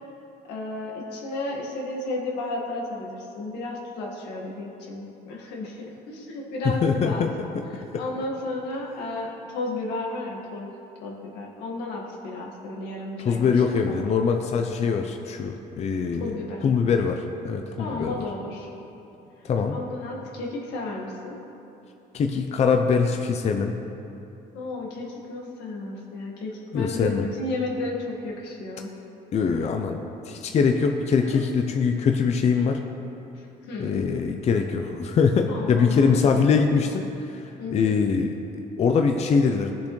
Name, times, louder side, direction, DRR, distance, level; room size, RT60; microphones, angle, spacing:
voice 1, 0.5-7.2 7.7-10.7 11.0-14.1 16.2-16.8 17.8-18.7 19.7-21.4 24.5-28.9 31.1-31.4 33.4-34.1 35.5-36.2 37.6-38.0, left 2 dB, 85° left, -2 dB, 1.7 m, -33 dB
voice 2, 6.6-7.6 13.2-16.3 16.6-18.1 19.4-19.8 22.1-23.7 26.7-27.3 29.3-30.0 30.3-32.8 33.8-37.4 37.7-38.3 38.8-39.7, left 5 dB, 40° left, 4 dB, 0.6 m, -23 dB
18.0 x 7.0 x 3.2 m, 2.9 s
cardioid pair, 110°, 17 cm